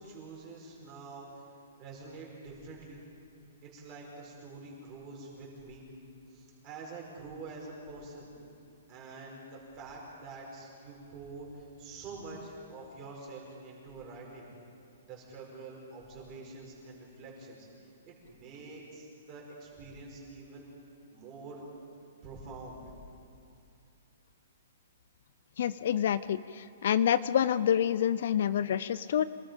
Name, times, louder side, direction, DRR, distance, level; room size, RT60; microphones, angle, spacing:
voice 1, 0.0-1.5 1.8-3.0 3.6-5.9 6.3-8.3 8.9-14.5 15.0-20.7 21.1-21.6 22.2-22.8, right 3 dB, 20° right, -3 dB, 5.1 m, -46 dB
voice 2, 25.6-29.2, left 9 dB, 50° left, 16 dB, 0.5 m, -27 dB
27.5 x 19.0 x 5.3 m, 2.5 s
hypercardioid pair, 175°, 0 cm